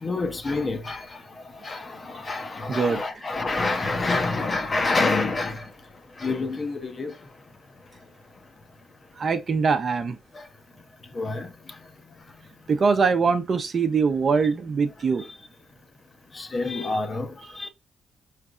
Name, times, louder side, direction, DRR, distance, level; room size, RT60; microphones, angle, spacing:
voice 1, 0.0-5.7 6.2-7.2 10.3-10.5 11.1-11.5 15.2-15.3 16.3-17.7, left 3 dB, 30° left, 0.7 m, -28 dB
voice 2, 2.7-3.0 9.2-10.2 12.7-15.2 17.6-17.7, right 5 dB, 45° right, 0.7 m, -23 dB
4.8 x 3.3 x 2.4 m
cardioid pair, 110°, 0 cm